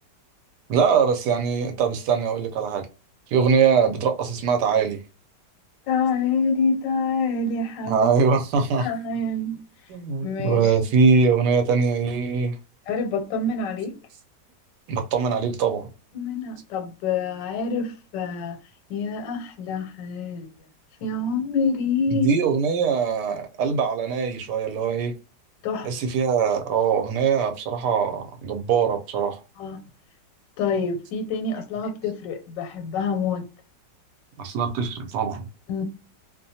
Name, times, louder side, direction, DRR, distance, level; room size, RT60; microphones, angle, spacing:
voice 1, 0.7-2.9 3.3-5.0 7.9-8.9 9.9-12.6 14.9-15.9 22.1-25.1 25.8-29.4 34.4-35.5, right 5 dB, 75° right, 1.1 m, -22 dB
voice 2, 5.9-8.1 8.8-9.6 10.2-10.7 12.9-13.9 16.1-18.6 18.9-20.5 21.0-22.3 25.6-25.9 29.6-29.8 30.6-33.4 35.7-35.8, left 4 dB, 90° left, 1.3 m, -26 dB
2.8 x 2.2 x 2.7 m
omnidirectional pair, 1.9 m